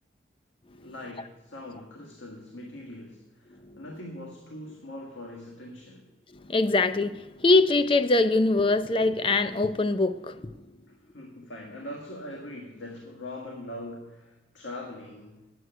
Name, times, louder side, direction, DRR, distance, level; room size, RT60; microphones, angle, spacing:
voice 1, 0.8-6.1 10.9-15.5, left 1 dB, 85° left, 0 dB, 1.6 m, -42 dB
voice 2, 6.3-10.5, left 2 dB, 30° left, 12 dB, 0.4 m, -23 dB
8.9 x 7.8 x 9.0 m, 1.0 s
head